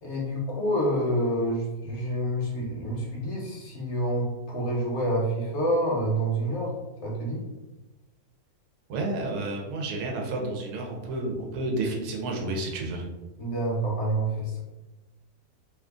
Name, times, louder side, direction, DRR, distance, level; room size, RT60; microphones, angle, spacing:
voice 1, 0.0-6.7 7.0-7.4 13.4-14.6, right 1 dB, 55° left, -3 dB, 0.9 m, -27 dB
voice 2, 8.9-13.0, right 2 dB, 85° right, 1 dB, 1.2 m, -31 dB
2.8 x 2.5 x 3.5 m, 1.1 s
omnidirectional pair, 1.6 m